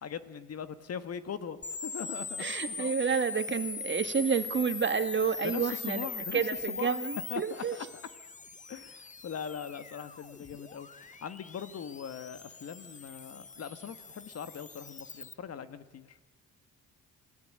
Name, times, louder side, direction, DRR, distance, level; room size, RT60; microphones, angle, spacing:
voice 1, 0.0-2.9 5.4-6.4 6.7-7.0 7.3-8.1 8.7-16.2, left 7 dB, 55° left, 12 dB, 1.8 m, -41 dB
sound 1, 1.6-15.3, left 4 dB, 25° left, 1.1 m, -41 dB
voice 2, 2.4-6.1 6.3-7.8, right 6 dB, 40° right, 9 dB, 2.0 m, -30 dB
27.5 x 18.0 x 9.0 m, 1.1 s
cardioid pair, 90°, 30 cm